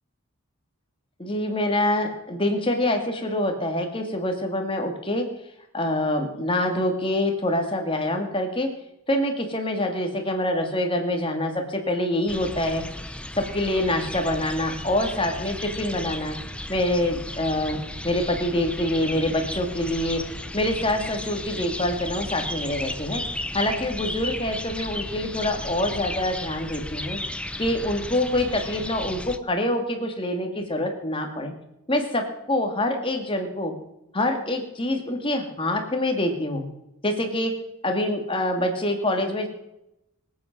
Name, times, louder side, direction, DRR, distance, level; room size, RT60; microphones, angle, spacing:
voice 1, 1.2-5.3 5.7-8.7 9.1-12.8 13.4-16.4 16.7-17.8 18.0-23.2 23.5-27.2 27.6-31.5 31.9-33.7 34.1-36.6 37.0-37.5 37.8-39.5, left 1 dB, 25° left, 4 dB, 2.4 m, -25 dB
sound 1, 12.3-29.4, left 1 dB, 5° left, 0.6 m, -34 dB
25.0 x 8.7 x 6.1 m, 0.86 s
head